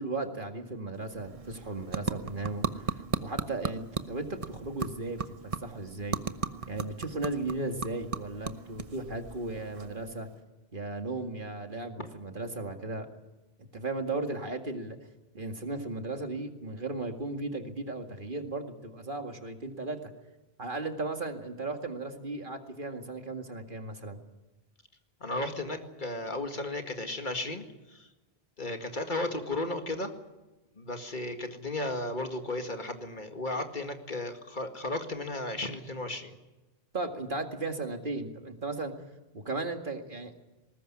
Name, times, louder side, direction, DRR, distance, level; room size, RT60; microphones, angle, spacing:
voice 1, 0.0-6.2 6.7-10.3 10.7-13.1 13.6-15.0 15.3-20.1 20.6-24.2 36.9-38.9 39.3-40.4, right 2 dB, 55° right, 5 dB, 2.3 m, -36 dB
sound 1, 1.0-10.4, right 4 dB, 35° right, 0.9 m, -37 dB
voice 2, 25.2-28.1 28.6-30.1 30.7-36.4, left 2 dB, 50° left, 5 dB, 2.2 m, -34 dB
21.0 x 19.0 x 9.9 m, 1.1 s
omnidirectional pair, 1.0 m